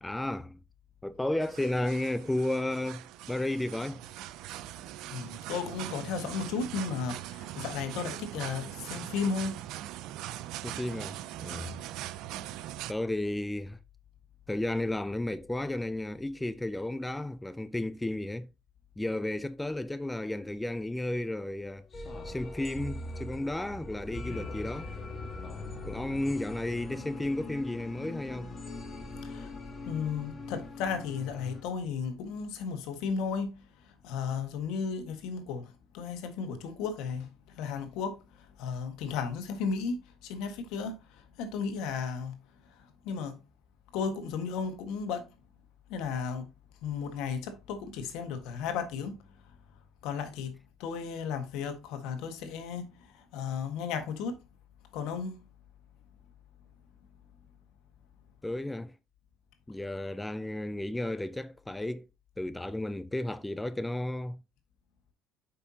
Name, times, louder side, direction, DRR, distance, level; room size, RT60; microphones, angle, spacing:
voice 1, 0.0-0.6 1.0-4.0 10.6-11.7 12.9-13.8 14.5-18.5 19.0-21.9 22.2-24.9 25.8-28.5 58.4-58.9 59.7-62.1 62.4-64.4, left 1 dB, 10° left, 0.4 m, -33 dB
sound 1, 1.4-12.9, right 14 dB, 70° right, 0.5 m, -41 dB
voice 2, 5.1-9.6 29.2-29.5 29.9-33.6 34.0-37.3 37.6-38.2 38.6-41.0 41.4-42.3 43.0-43.4 43.9-45.2 45.9-46.5 46.8-49.2 50.0-50.5 50.8-52.9 53.1-54.4 54.9-55.4, left 6 dB, 75° left, 1.5 m, -34 dB
sound 2, 21.9-31.6, left 2 dB, 30° left, 1.7 m, -41 dB
8.1 x 5.6 x 2.8 m
cardioid pair, 110°, 0 cm